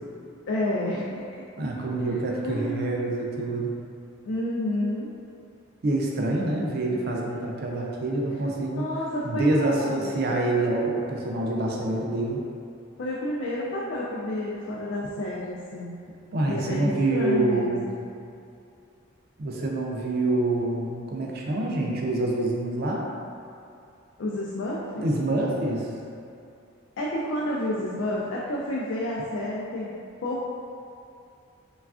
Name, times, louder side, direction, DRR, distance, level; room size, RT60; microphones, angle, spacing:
voice 1, 0.5-1.2 2.0-2.9 4.3-5.1 8.7-10.2 13.0-15.9 16.5-18.0 24.2-25.1 27.0-30.4, left 1 dB, 65° left, -6 dB, 0.3 m, -30 dB
voice 2, 1.6-3.7 5.8-8.8 9.2-12.4 16.3-17.9 19.4-23.1 25.0-25.9, right 2 dB, 50° right, -1 dB, 0.4 m, -26 dB
3.2 x 2.3 x 2.4 m, 2.5 s
head